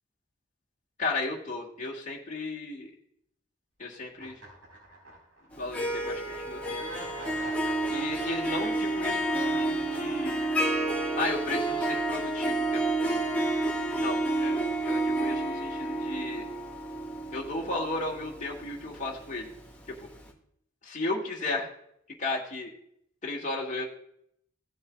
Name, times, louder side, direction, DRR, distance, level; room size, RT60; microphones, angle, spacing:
voice 1, 1.0-2.9 3.8-4.4 5.6-6.8 7.9-10.5 11.2-13.2 13.9-16.5 17.3-19.5 20.0-20.1 20.8-21.7 22.2-22.7 23.2-23.8, left 2 dB, 40° left, -3 dB, 1.9 m, -34 dB
sound 1, 4.2-5.5 5.8-5.9 6.8-11.1, right 1 dB, 75° right, 4.2 m, -45 dB
Harp, 5.5-19.5, right 2 dB, 5° left, 1.6 m, -30 dB
16.5 x 7.2 x 2.3 m, 0.70 s
head